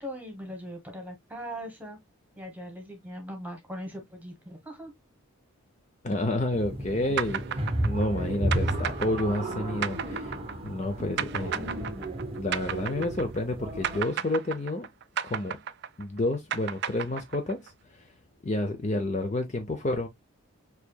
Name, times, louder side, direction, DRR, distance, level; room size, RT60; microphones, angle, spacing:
voice 1, 0.0-2.0 2.4-4.9, equal, 5° right, 1.2 m, -40 dB
voice 2, 6.0-10.4 10.6-11.8 12.4-14.9 15.2-15.6 16.0-18.1 18.4-20.1, left 1 dB, 30° left, 0.6 m, -30 dB
sound 1, 6.5-14.0, right 1 dB, 25° right, 0.7 m, -33 dB
sound 2, 7.2-13.5 13.8-17.7, right 9 dB, 50° right, 0.3 m, -33 dB
6.6 x 2.8 x 2.2 m
head